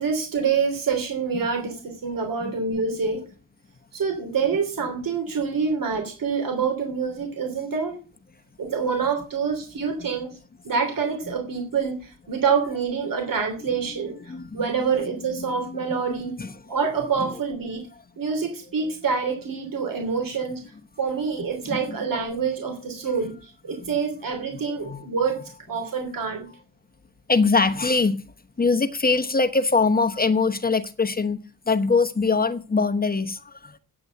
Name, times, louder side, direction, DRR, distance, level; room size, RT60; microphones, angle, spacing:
voice 1, 0.0-3.3 3.9-8.0 8.6-10.3 10.6-16.4 16.7-17.9 18.2-20.6 21.0-25.4 25.7-26.5, right 5 dB, 65° right, 3.1 m, -26 dB
voice 2, 14.3-14.7 15.4-16.5 21.7-21.8 22.3-22.4 23.0-23.1 24.7-25.0 27.3-28.2 28.6-31.4 31.7-33.8, left 4 dB, 25° left, 1.0 m, -23 dB
9.8 x 7.8 x 8.0 m
wide cardioid pair, 115°, 36 cm